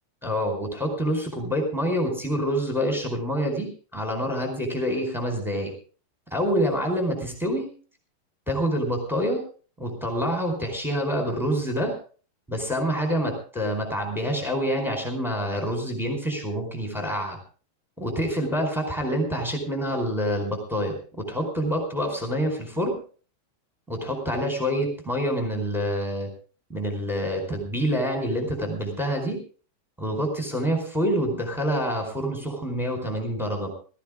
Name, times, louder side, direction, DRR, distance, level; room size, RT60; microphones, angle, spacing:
voice 1, 0.2-5.7 6.3-7.7 8.5-9.4 9.8-12.0 12.5-17.4 18.0-23.0 23.9-26.3 26.7-29.4 30.0-33.7, equal, ahead, 1 dB, 3.8 m, -27 dB
19.5 x 15.0 x 3.6 m, 0.39 s
omnidirectional pair, 5.0 m